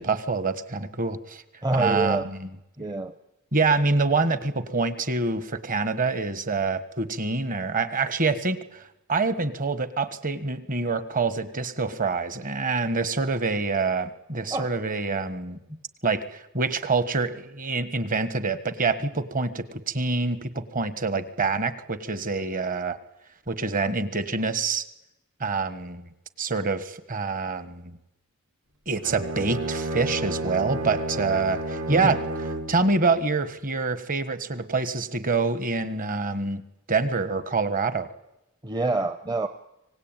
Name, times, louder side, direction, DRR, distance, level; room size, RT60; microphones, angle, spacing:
voice 1, 0.0-1.4 1.7-2.5 3.5-8.8 9.1-15.6 16.0-23.0 23.5-24.8 25.4-26.0 26.4-28.0 28.9-32.2 32.7-36.6 36.9-38.1, right 3 dB, 40° right, 12 dB, 1.5 m, -26 dB
voice 2, 1.6-2.3 2.8-3.1 14.5-14.7 15.7-15.8 31.9-32.2 38.6-39.5, right 2 dB, 20° right, 9 dB, 0.8 m, -26 dB
Bowed string instrument, 29.0-32.8, right 1 dB, 70° right, 3.4 m, -31 dB
25.0 x 19.0 x 9.1 m, 0.90 s
head